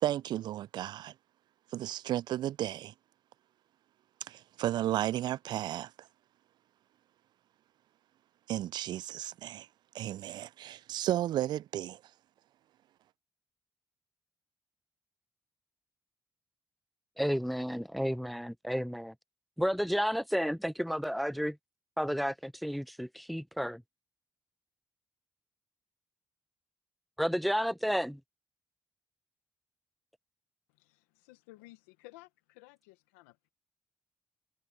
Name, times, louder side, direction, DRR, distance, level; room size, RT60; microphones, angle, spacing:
voice 1, 0.0-1.1 1.7-2.9 4.3-6.1 8.5-9.7 9.9-12.0, right 13 dB, 70° right, 0.4 m, -33 dB
voice 2, 17.2-19.1 19.6-21.6 22.0-23.8 27.2-28.2, equal, ahead, 0.8 m, -31 dB
voice 3, 30.7-33.5, left 20 dB, 90° left, 1.1 m, -56 dB
hypercardioid pair, 45°, 8 cm